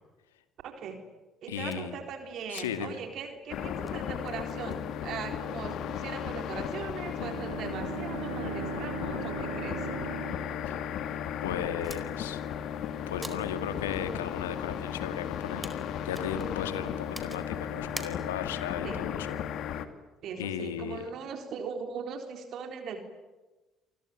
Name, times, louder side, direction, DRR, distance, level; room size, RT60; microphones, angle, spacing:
voice 1, 0.6-1.0 1.4-9.8 18.8-19.0 20.2-23.0, right 6 dB, 55° right, 6 dB, 3.9 m, -39 dB
voice 2, 1.5-2.0 2.5-2.9 10.7-10.8 11.4-12.4 13.1-19.4 20.4-21.0, left 9 dB, 80° left, 10 dB, 2.2 m, -36 dB
sound 1, 1.7-18.7, right 1 dB, 5° right, 4.6 m, -51 dB
sound 2, 3.5-19.9, left 9 dB, 60° left, 2.4 m, -35 dB
Bowed string instrument, 7.1-11.9, right 9 dB, 80° right, 1.5 m, -40 dB
28.0 x 22.5 x 9.4 m, 1.2 s
hypercardioid pair, 55°, 0 cm